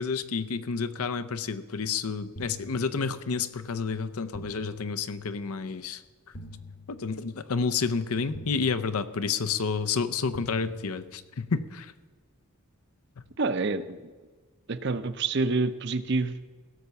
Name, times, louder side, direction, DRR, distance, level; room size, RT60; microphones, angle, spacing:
voice 1, 0.0-6.0 6.9-11.9, left 5 dB, 80° left, 11 dB, 0.6 m, -30 dB
sound 1, 2.4-3.5 4.3-5.5 6.3-7.5 8.3-9.5 10.3-11.5, left 1 dB, 45° left, 1.1 m, -46 dB
voice 2, 13.4-14.1 14.7-16.5, right 3 dB, 50° right, 12 dB, 0.6 m, -28 dB
16.5 x 6.5 x 7.0 m, 1.4 s
head